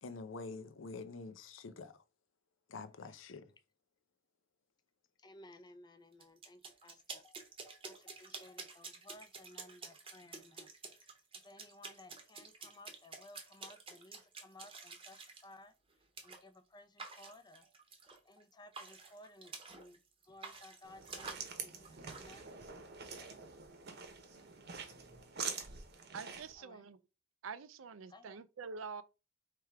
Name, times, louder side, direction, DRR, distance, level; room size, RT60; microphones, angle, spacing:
voice 1, 0.0-2.0 2.7-3.5, left 3 dB, 75° left, 0.6 m, -47 dB
voice 2, 2.7-3.2 5.2-15.7 16.2-17.7 18.2-20.0 20.3-22.6 26.6-26.8 28.1-28.4, left 1 dB, 20° left, 0.6 m, -58 dB
sound 1, 6.2-15.4 16.2-16.4 17.0-18.4 18.7-20.0 20.2-22.3, right 4 dB, 30° right, 0.9 m, -50 dB
sound 2, 20.8-26.5, right 5 dB, 55° right, 0.9 m, -46 dB
voice 3, 26.1-27.0 27.4-29.0, right 5 dB, 90° right, 0.5 m, -46 dB
3.4 x 3.3 x 4.6 m
head